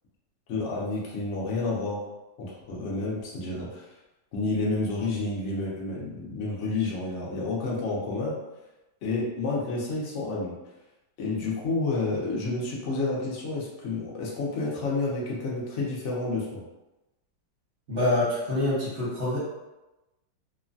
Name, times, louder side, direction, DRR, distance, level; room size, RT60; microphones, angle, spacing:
voice 1, 0.5-2.0 2.4-3.8 4.3-8.3 9.0-10.5 11.2-16.6, left 3 dB, 70° left, -4 dB, 0.7 m, -30 dB
voice 2, 17.9-19.4, left 1 dB, 40° right, -8 dB, 0.8 m, -26 dB
3.0 x 2.1 x 2.5 m, 1.0 s
omnidirectional pair, 2.0 m